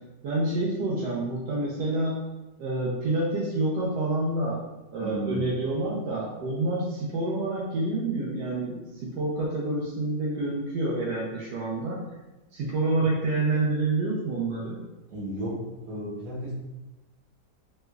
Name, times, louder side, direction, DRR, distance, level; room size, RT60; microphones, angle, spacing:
voice 1, 0.2-2.3 2.6-4.6 4.9-12.1 12.5-14.8, right 2 dB, 80° right, -6 dB, 1.2 m, -28 dB
voice 2, 5.0-5.5 15.1-16.5, equal, 60° right, -6 dB, 1.4 m, -33 dB
3.1 x 3.1 x 2.3 m, 1.0 s
omnidirectional pair, 1.8 m